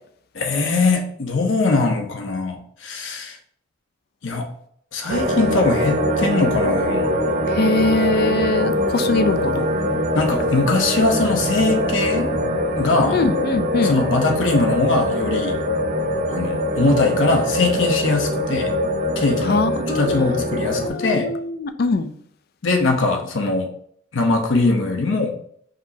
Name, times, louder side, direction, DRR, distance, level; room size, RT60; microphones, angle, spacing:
voice 1, 0.3-3.4 4.2-4.5 4.9-7.1 10.1-12.3 12.7-13.2 13.8-15.6 16.3-18.7 19.2-19.6 19.9-21.3 22.6-23.7 24.1-25.4, left 3 dB, 70° left, 3 dB, 0.8 m, -21 dB
sound 1, 5.1-20.9, left 1 dB, 40° right, 0.5 m, -22 dB
voice 2, 7.6-9.7 13.1-14.0 19.5-20.3 20.7-22.1, left 3 dB, 50° left, 10 dB, 0.4 m, -22 dB
5.2 x 3.0 x 2.7 m, 0.64 s
head